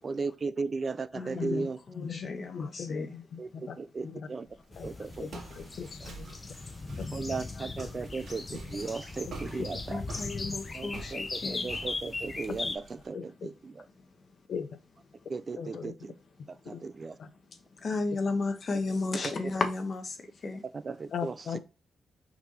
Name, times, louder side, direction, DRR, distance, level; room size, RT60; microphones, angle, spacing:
voice 1, 0.0-1.8 3.4-4.5 4.8-5.3 7.1-10.0 10.7-13.9 15.3-16.2 16.5-17.2 20.8-21.6, right 4 dB, 35° right, 0.4 m, -36 dB
voice 2, 1.1-3.1 7.5-7.6 9.9-11.7 17.8-20.2 20.4-20.6, left 3 dB, 40° left, 1.1 m, -33 dB
voice 3, 1.9-3.8 4.0-4.3 4.8-4.9 5.2-6.4 8.5-8.6 9.6-9.7 10.4-10.5 12.5-12.6 13.1-13.5 14.5-14.7 15.6-15.9 16.6-16.8 17.2-17.3 21.1-21.6, left 6 dB, 70° left, 0.7 m, -38 dB
Walk footsteps, 4.5-13.1, right 3 dB, 70° right, 1.7 m, -48 dB
sound 1, 4.7-12.8, left 3 dB, 25° left, 0.7 m, -38 dB
5.7 x 4.0 x 4.2 m
wide cardioid pair, 150°, 0 cm